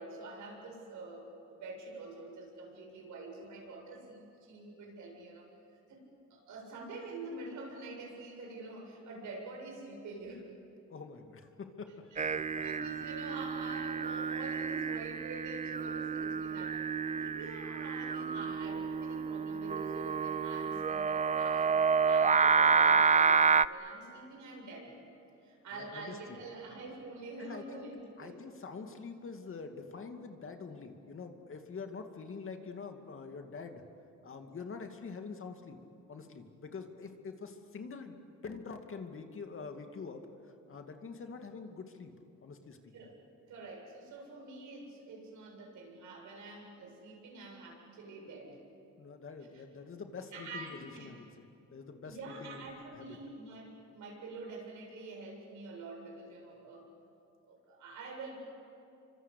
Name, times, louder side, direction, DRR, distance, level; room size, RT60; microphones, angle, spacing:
voice 1, 0.0-5.5 5.9-6.0 6.3-10.5 12.1-24.9 25.4-28.4 42.9-43.2 43.5-48.6 49.5-49.6 50.3-51.1 52.0-56.9 57.5-58.4, right 3 dB, 75° right, 0 dB, 7.7 m, -47 dB
voice 2, 10.9-12.6 25.7-26.4 27.4-27.9 28.2-33.8 34.2-35.8 36.1-42.1 42.4-43.1 49.0-51.5 51.7-52.6 52.9-53.2, left 4 dB, 45° left, 5 dB, 2.4 m, -45 dB
Singing, 12.2-23.6, right 5 dB, 25° right, 0.6 m, -29 dB
28.0 x 25.0 x 8.4 m, 2.7 s
cardioid pair, 90°, 30 cm